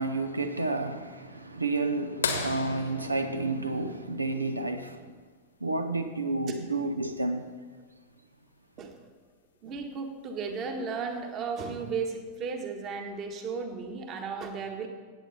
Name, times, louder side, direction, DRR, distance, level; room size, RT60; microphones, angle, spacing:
voice 1, 0.0-5.1 5.6-7.5, right 2 dB, 80° right, 0.7 m, -30 dB
sound 1, 2.2-4.7 6.6-6.7 8.9-9.0 10.7-11.0 11.8-11.9, left 5 dB, 70° left, 1.3 m, -34 dB
voice 2, 9.6-14.9, right 5 dB, 35° right, 1.6 m, -35 dB
16.0 x 8.7 x 4.2 m
figure-of-eight pair, 90°, 0 cm